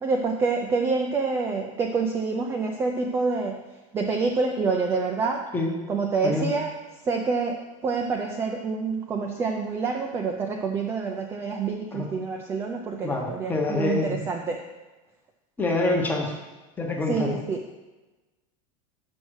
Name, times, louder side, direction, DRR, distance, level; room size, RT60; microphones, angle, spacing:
voice 1, 0.0-3.6 3.9-5.4 5.9-6.7 7.0-14.6 17.1-17.6, right 4 dB, 15° right, 1 dB, 0.4 m, -27 dB
voice 2, 13.0-14.2 15.6-16.3 16.8-17.4, left 2 dB, 10° left, 1 dB, 0.9 m, -26 dB
6.2 x 5.2 x 6.3 m, 1.2 s
supercardioid pair, 170°, 17 cm